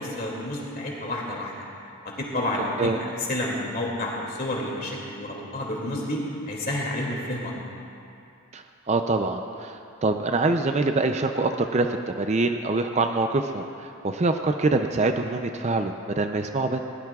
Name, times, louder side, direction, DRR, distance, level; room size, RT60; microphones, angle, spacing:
voice 1, 0.0-1.5 2.0-7.5, left 1 dB, 40° left, -3 dB, 2.5 m, -30 dB
voice 2, 8.5-13.6 14.0-16.8, right 3 dB, 30° right, 6 dB, 0.4 m, -25 dB
20.0 x 16.5 x 2.4 m, 2.5 s
head